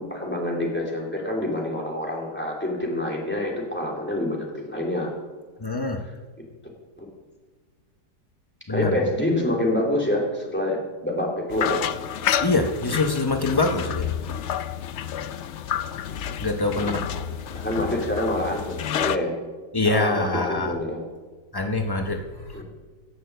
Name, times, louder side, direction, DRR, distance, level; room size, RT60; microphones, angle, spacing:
voice 1, 0.0-5.1 7.0-7.1 8.7-11.8 16.7-17.0 17.5-19.3 19.8-21.0 22.5-22.6, left 1 dB, 5° left, -1 dB, 3.3 m, -27 dB
voice 2, 5.6-6.0 8.7-8.9 12.4-14.1 16.4-17.2 19.7-20.7 21.5-22.6, left 2 dB, 35° left, 4 dB, 0.4 m, -25 dB
sound 1, 11.5-19.2, left 9 dB, 80° left, 0.6 m, -29 dB
17.5 x 6.7 x 7.9 m, 1.4 s
omnidirectional pair, 1.9 m